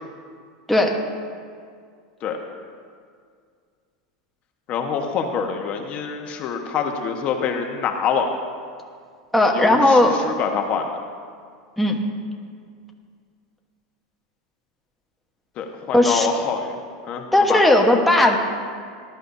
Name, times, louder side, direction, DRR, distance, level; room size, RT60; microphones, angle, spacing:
voice 1, 4.7-8.3 9.5-10.9 15.6-16.8 17.0-17.2 17.5-17.6, left 6 dB, 40° left, 3 dB, 1.3 m, -25 dB
voice 2, 9.3-10.1 11.8-12.0 15.9-16.3 17.3-18.4, left 1 dB, 5° left, 0 dB, 1.3 m, -16 dB
18.5 x 12.5 x 2.8 m, 2.1 s
supercardioid pair, 125°, 3 cm